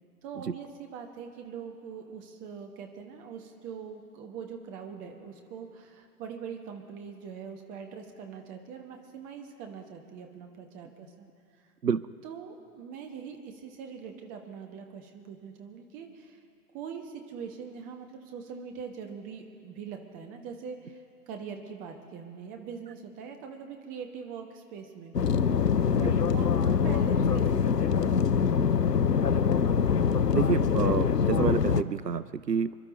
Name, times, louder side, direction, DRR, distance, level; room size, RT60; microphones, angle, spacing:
voice 1, 0.2-11.3 12.2-16.4 16.7-25.2 26.0-27.9, right 6 dB, 15° right, 4 dB, 1.1 m, -42 dB
sound 1, 25.1-31.8, left 6 dB, 85° left, 0.7 m, -24 dB
voice 2, 30.3-32.8, right 7 dB, 85° right, 16 dB, 0.6 m, -28 dB
27.0 x 12.0 x 4.1 m, 2.4 s
figure-of-eight pair, 125°, 47 cm